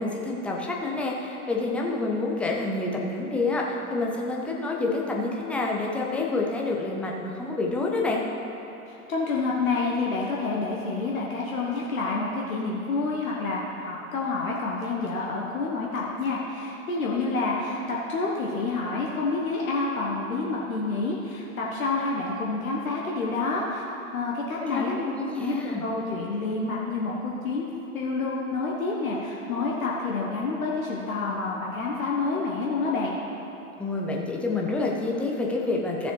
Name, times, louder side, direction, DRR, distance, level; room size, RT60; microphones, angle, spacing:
voice 1, 0.0-8.2 24.7-25.8 33.8-36.1, left 3 dB, 5° left, -2 dB, 0.5 m, -28 dB
voice 2, 8.9-23.8 24.1-24.9 25.4-25.5 25.8-27.7 27.9-33.1, left 3 dB, 65° left, -3 dB, 1.3 m, -28 dB
14.5 x 6.8 x 3.3 m, 3.0 s
figure-of-eight pair, 105°, 44 cm